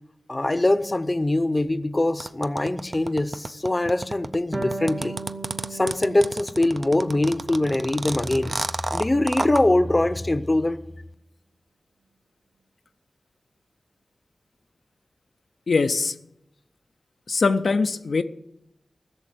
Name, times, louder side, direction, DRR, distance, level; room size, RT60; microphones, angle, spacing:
voice 1, 0.3-5.2 5.7-8.6 8.9-10.8, left 1 dB, 30° left, 0.7 m, -23 dB
sound 1, 2.2-9.6, right 3 dB, 45° right, 0.5 m, -30 dB
Harp, 4.5-7.9 8.3-9.3, right 2 dB, 15° right, 0.8 m, -38 dB
voice 2, 15.7-16.2 17.3-18.2, left 4 dB, 75° left, 0.5 m, -22 dB
15.0 x 7.0 x 7.8 m
wide cardioid pair, 70°, 0 cm